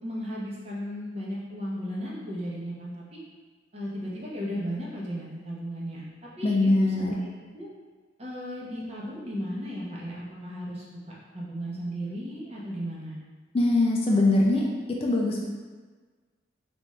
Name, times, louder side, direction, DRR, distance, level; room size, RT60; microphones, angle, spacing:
voice 1, 0.0-3.2 3.7-7.7 8.2-10.8 11.3-13.1, equal, 30° right, -5 dB, 0.8 m, -35 dB
voice 2, 6.4-7.1 13.5-14.7 15.0-15.4, left 2 dB, 30° left, -1 dB, 0.3 m, -22 dB
3.4 x 2.5 x 4.1 m, 1.4 s
head